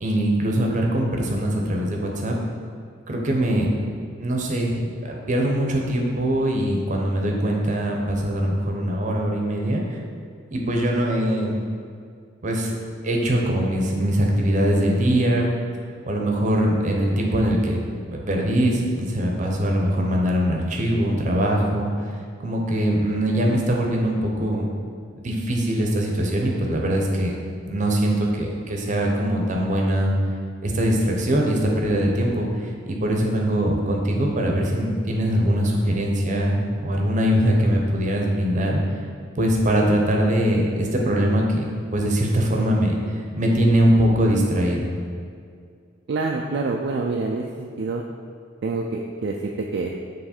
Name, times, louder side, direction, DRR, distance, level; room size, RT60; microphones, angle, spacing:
voice 1, 0.0-2.4 3.1-3.7 4.2-4.7 5.0-9.8 10.5-11.6 12.4-12.7 13.0-15.5 16.1-17.8 18.1-21.9 22.4-24.7 25.2-27.3 27.7-30.1 30.6-32.5 32.9-38.8 39.4-41.6 41.9-43.0 43.3-44.9, right 1 dB, 40° right, 0 dB, 0.8 m, -22 dB
voice 2, 46.1-48.0 48.6-49.9, right 3 dB, 55° right, 0 dB, 0.3 m, -26 dB
7.0 x 3.2 x 4.3 m, 2.2 s
head